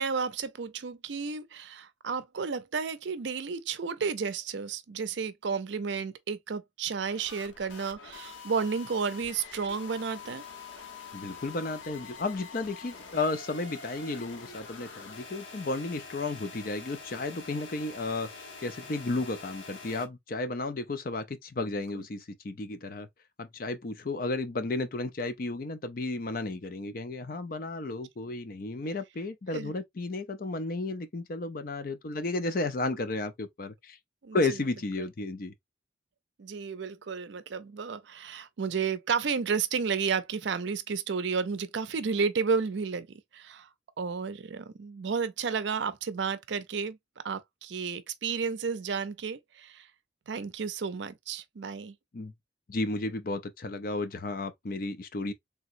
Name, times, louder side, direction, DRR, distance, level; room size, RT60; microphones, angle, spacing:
voice 1, 0.0-10.4 21.7-21.8 29.5-29.7 34.2-34.4 36.4-43.1 43.3-43.7 44.0-47.0 47.2-49.9 50.3-51.9, right 5 dB, 70° right, 0.5 m, -32 dB
sound 1, 7.0-20.1, left 4 dB, 85° left, 0.9 m, -46 dB
voice 2, 11.1-23.1 23.4-34.0 34.3-35.5 52.1-52.3 52.7-55.3, left 2 dB, 45° left, 0.5 m, -33 dB
3.4 x 2.9 x 2.5 m
head